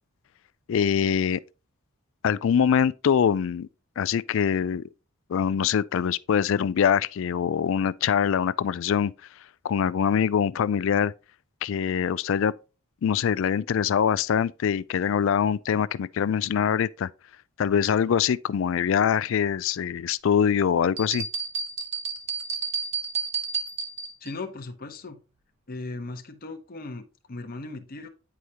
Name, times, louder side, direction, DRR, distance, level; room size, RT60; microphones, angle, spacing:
voice 1, 0.7-1.4 2.2-3.7 4.0-4.9 5.3-9.1 9.6-11.1 11.6-12.5 13.0-17.1 17.6-21.3, left 7 dB, 60° left, 0.3 m, -23 dB
sound 1, 21.0-24.3, right 5 dB, 30° right, 1.0 m, -31 dB
voice 2, 24.2-25.2 25.7-28.1, left 3 dB, 40° left, 0.8 m, -37 dB
9.3 x 4.9 x 2.8 m
head